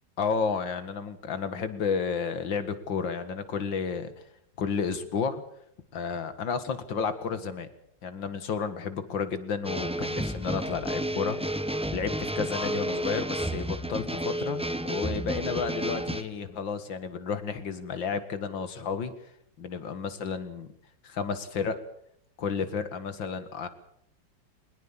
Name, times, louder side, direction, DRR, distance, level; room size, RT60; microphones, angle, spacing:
voice 1, 0.2-4.1 4.6-5.4 5.9-7.7 8.0-11.6 11.9-19.1 19.6-20.7 21.0-21.8 22.4-23.7, left 5 dB, 80° left, 11 dB, 2.5 m, -31 dB
sound 1, 9.6-16.2, right 1 dB, 5° right, 0.6 m, -31 dB
21.5 x 20.0 x 7.4 m, 0.70 s
omnidirectional pair, 2.0 m